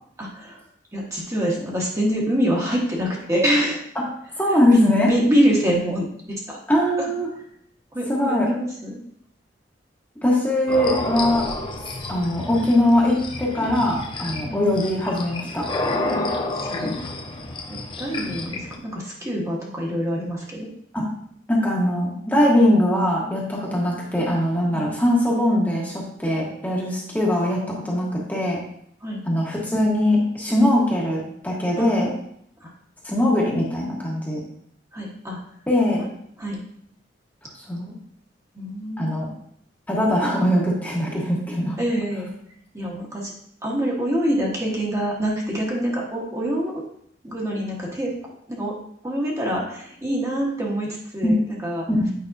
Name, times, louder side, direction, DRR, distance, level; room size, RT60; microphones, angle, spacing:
voice 1, 0.2-0.6 0.9-3.8 4.5-7.1 7.9-9.0 14.5-14.6 16.1-16.3 16.6-17.0 17.7-20.7 24.7-24.9 29.0-29.2 31.8-32.1 32.6-32.7 34.9-35.4 36.0-36.1 36.4-36.6 38.5-39.1 41.8-42.3 42.7-43.3 43.6-46.8 47.2-48.1 48.5-48.7 49.0-51.9, equal, 15° right, -3 dB, 1.2 m, -25 dB
voice 2, 4.4-5.1 6.7-7.3 8.1-8.5 10.2-11.5 12.1-15.7 20.9-21.1 21.5-28.6 29.2-32.1 33.0-34.4 35.7-36.0 37.7-37.9 39.0-39.3 39.9-41.8 51.2-51.3 52.0-52.1, left 1 dB, 10° left, -4 dB, 1.2 m, -21 dB
sound 1, 10.7-18.8, left 2 dB, 25° left, 0.7 m, -30 dB
8.5 x 5.2 x 2.6 m, 0.68 s
head